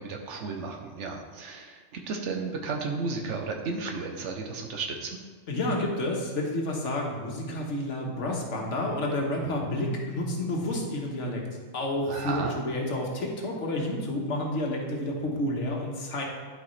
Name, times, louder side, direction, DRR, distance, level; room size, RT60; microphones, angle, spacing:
voice 1, 0.0-5.2 12.1-12.5, right 4 dB, 80° right, 2 dB, 1.1 m, -33 dB
voice 2, 5.5-11.4 11.7-16.2, left 1 dB, 85° left, -1 dB, 1.5 m, -30 dB
11.0 x 4.9 x 3.2 m, 1.5 s
omnidirectional pair, 1.2 m